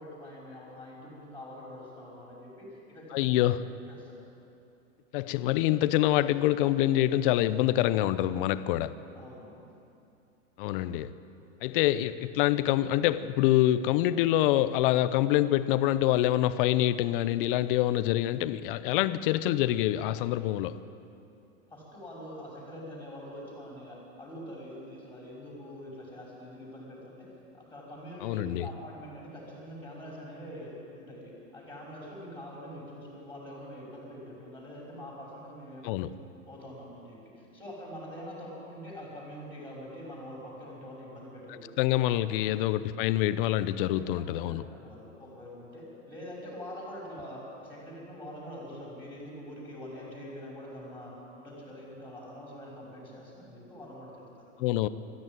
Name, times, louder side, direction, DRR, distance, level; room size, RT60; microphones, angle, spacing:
voice 1, 0.0-3.6 3.9-4.2 9.1-9.7 21.7-27.3 27.5-36.1 36.5-41.7 42.0-42.4 43.8-54.5, equal, 5° left, 5.8 m, -44 dB
voice 2, 3.1-3.6 5.1-8.9 10.6-11.1 11.6-20.8 28.2-28.7 35.8-36.1 41.8-44.6 54.6-54.9, left 14 dB, 45° left, 0.8 m, -26 dB
20.0 x 14.0 x 9.3 m
hypercardioid pair, 140°, 39 cm